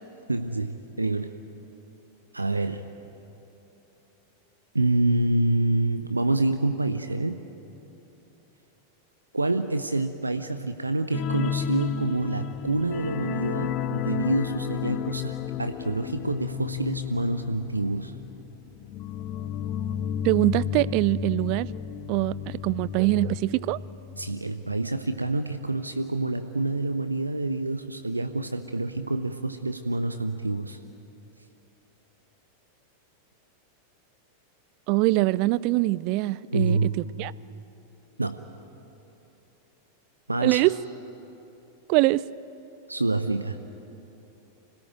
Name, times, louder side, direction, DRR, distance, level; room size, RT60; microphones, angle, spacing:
voice 1, 0.3-1.4 2.3-2.9 4.7-7.4 9.3-18.1 24.2-30.8 36.5-37.0 38.2-38.4 40.3-40.6 42.9-43.6, right 2 dB, 80° right, 9 dB, 0.7 m, -27 dB
sound 1, 11.1-24.4 24.7-24.9 25.2-25.3, left 9 dB, 35° left, 0.7 m, -32 dB
voice 2, 20.2-21.7 22.1-23.8 34.9-37.3 40.4-40.7 41.9-42.2, right 19 dB, 45° right, 21 dB, 0.4 m, -23 dB
26.0 x 17.5 x 9.3 m, 3.0 s
figure-of-eight pair, 90°, 0 cm